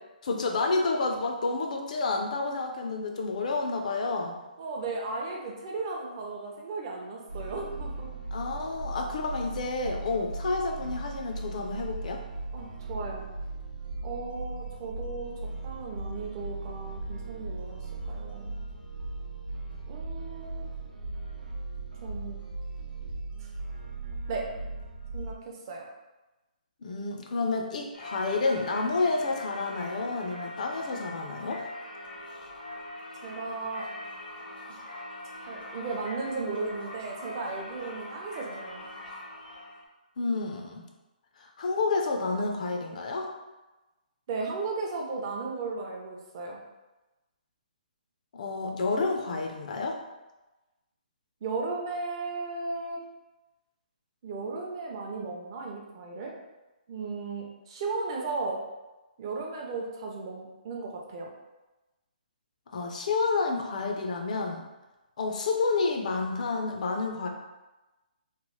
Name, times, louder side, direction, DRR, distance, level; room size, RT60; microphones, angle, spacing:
voice 1, 0.2-4.4 8.3-12.2 26.8-31.6 40.2-40.8 41.4-43.3 48.3-50.0 62.7-64.6 65.2-67.3, left 3 dB, 50° left, 2 dB, 0.4 m, -29 dB
voice 2, 4.6-8.1 8.6-8.7 12.5-13.3 14.0-17.8 18.0-18.6 19.9-20.7 22.0-22.4 23.4-23.5 24.3-24.5 25.1-25.9 33.2-33.9 34.6-34.8 35.4-38.9 44.3-46.6 51.4-53.0 54.2-56.3 56.9-58.6 59.2-61.3, right 3 dB, 30° right, 0 dB, 0.5 m, -35 dB
sound 1, 7.3-25.4, right 3 dB, 85° right, 0.7 m, -38 dB
Singing / Church bell, 27.9-39.8, left 1 dB, 85° left, 0.9 m, -42 dB
3.0 x 2.0 x 3.0 m, 1.1 s
hypercardioid pair, 165°, 5 cm